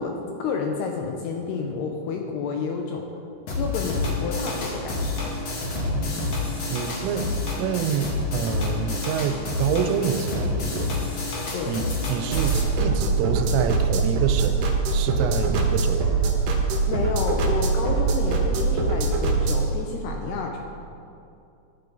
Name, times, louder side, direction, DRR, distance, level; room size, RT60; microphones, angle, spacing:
voice 1, 0.0-3.1 3.6-5.3 11.5-11.8 16.9-20.6, left 5 dB, 85° left, 2 dB, 2.3 m, -30 dB
sound 1, 3.5-12.6, left 3 dB, 65° left, 1.5 m, -28 dB
voice 2, 5.8-6.3 6.7-7.3 7.6-11.2 11.7-14.6 14.9-16.1, right 8 dB, 85° right, 8 dB, 3.3 m, -27 dB
sound 2, 12.3-19.7, right 4 dB, 70° right, 2.2 m, -23 dB
14.0 x 11.0 x 4.0 m, 2.6 s
omnidirectional pair, 5.6 m